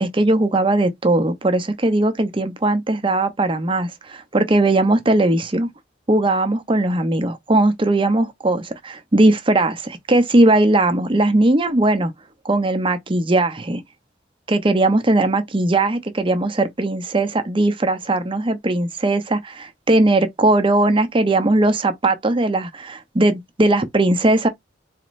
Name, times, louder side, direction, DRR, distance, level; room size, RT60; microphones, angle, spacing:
voice 1, 0.0-5.7 6.1-12.1 12.4-13.8 14.5-24.5, right 2 dB, 30° right, 0.7 m, -19 dB
4.2 x 3.0 x 2.5 m
head